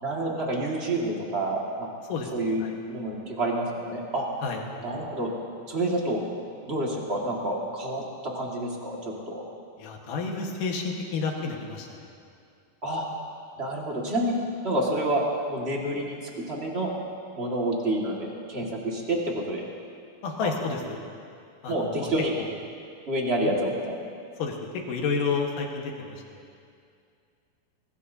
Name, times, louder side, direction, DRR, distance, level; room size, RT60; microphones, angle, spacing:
voice 1, 0.0-1.9 2.3-2.6 2.9-4.3 4.8-5.3 5.7-6.2 6.7-9.4 12.8-13.1 13.6-14.3 14.6-15.2 15.5-16.9 17.3-19.6 20.4-20.5 21.7-22.3 23.1-23.9, right 1 dB, 30° right, -3 dB, 1.1 m, -28 dB
voice 2, 2.1-2.8 4.4-4.6 9.8-12.1 20.2-21.0 21.6-22.1 22.4-22.5 23.4-23.5 24.4-26.4, left 4 dB, 70° left, 1 dB, 2.9 m, -31 dB
24.0 x 19.0 x 2.7 m, 2.4 s
omnidirectional pair, 4.2 m